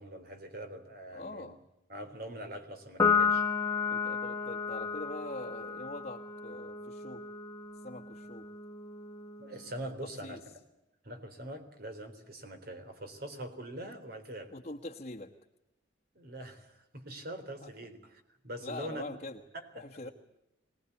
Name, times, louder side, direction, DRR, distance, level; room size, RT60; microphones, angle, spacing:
voice 1, 0.0-1.5 1.9-3.5 9.4-10.4 11.0-14.5 16.1-19.0 19.5-20.1, right 1 dB, 50° right, 7 dB, 3.8 m, -43 dB
voice 2, 1.1-1.6 3.9-7.2 7.8-8.5 10.0-10.4 14.5-15.3 17.6-17.7 18.6-19.4 19.7-20.1, left 2 dB, 40° left, 0 dB, 1.3 m, -43 dB
Piano, 3.0-9.7, left 6 dB, 15° left, 1.5 m, -33 dB
24.0 x 19.5 x 8.4 m, 0.89 s
head